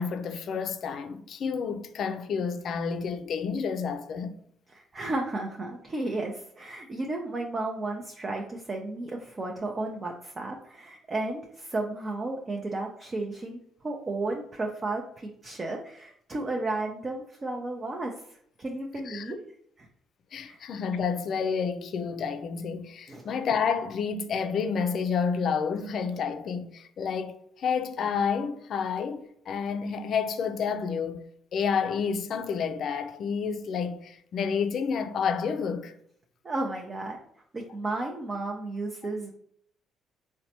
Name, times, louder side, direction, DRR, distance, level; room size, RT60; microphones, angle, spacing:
voice 1, 0.0-4.3 19.1-19.3 20.3-31.2 31.5-35.9, left 6 dB, 60° left, 0.4 m, -30 dB
voice 2, 4.7-19.4 19.8-19.9 20.5-20.6 23.1-23.3 36.4-37.2 37.5-39.3, right 2 dB, 35° right, 0.5 m, -33 dB
3.9 x 2.2 x 2.8 m
hypercardioid pair, 60°, 0 cm